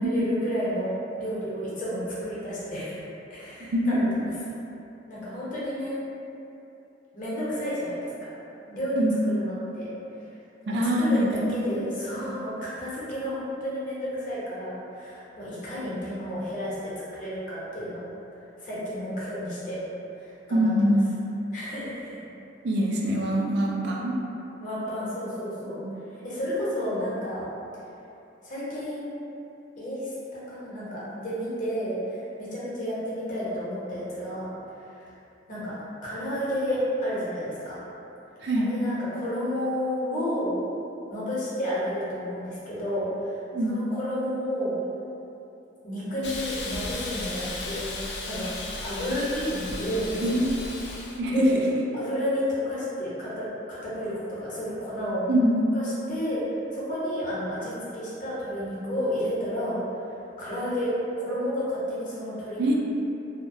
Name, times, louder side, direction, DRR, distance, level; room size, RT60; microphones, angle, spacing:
voice 1, 0.0-3.0 3.3-4.0 5.1-6.0 7.1-8.3 8.7-9.0 9.2-9.9 10.6-18.1 18.6-19.8 20.2-20.7 21.5-22.2 23.8-24.1 24.6-25.8 26.2-27.5 28.4-29.2 29.8-34.5 35.0-35.1 35.5-35.7 36.0-37.8 38.6-40.6 41.1-43.3 43.7-44.7 45.8-47.9 48.3-48.5 48.8-50.4 51.3-51.6 51.9-55.2 55.7-56.4 56.7-59.8 60.4-60.9 61.2-62.8, equal, 45° left, -9 dB, 0.7 m, -31 dB
voice 2, 3.7-4.1 8.9-9.2 10.7-11.7 20.5-21.1 22.6-24.2 25.8-25.9 38.4-38.7 43.5-43.8 50.2-50.6 51.2-51.5 55.3-55.5 62.6-62.8, equal, 65° right, -2 dB, 0.4 m, -24 dB
Hiss, 46.2-51.2, left 2 dB, 70° left, 0.3 m, -35 dB
2.7 x 2.1 x 2.5 m, 2.9 s
head